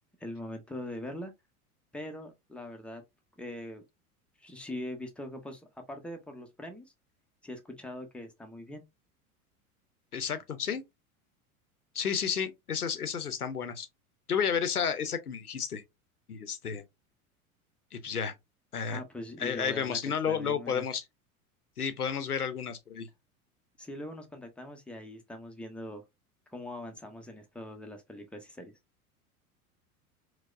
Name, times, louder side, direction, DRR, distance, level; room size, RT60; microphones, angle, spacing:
voice 1, 0.2-1.3 1.9-3.0 3.4-3.8 4.4-5.6 5.9-6.9 7.4-8.8 18.9-20.8 23.8-26.0 26.5-28.7, left 1 dB, 5° left, 0.5 m, -42 dB
voice 2, 10.1-10.8 11.9-13.9 14.3-15.8 16.3-16.8 17.9-18.3 18.7-19.0 19.4-21.0 21.8-23.1, left 7 dB, 90° left, 0.6 m, -31 dB
4.6 x 2.0 x 2.3 m
figure-of-eight pair, 80°, 44 cm